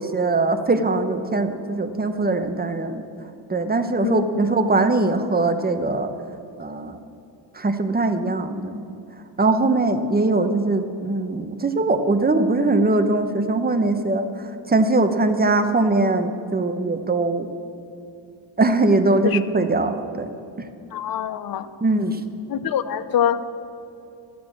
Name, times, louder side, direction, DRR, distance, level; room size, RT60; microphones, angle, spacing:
voice 1, 0.0-3.0 3.5-6.1 6.6-7.0 7.5-8.8 9.4-14.3 14.7-17.5 18.6-20.3 20.6-20.7 21.8-22.2, right 2 dB, 20° right, 8 dB, 0.9 m, -21 dB
voice 2, 20.9-21.7 22.5-23.4, left 9 dB, 50° left, 12 dB, 0.8 m, -24 dB
13.0 x 8.6 x 7.2 m, 2.8 s
cardioid pair, 105°, 45 cm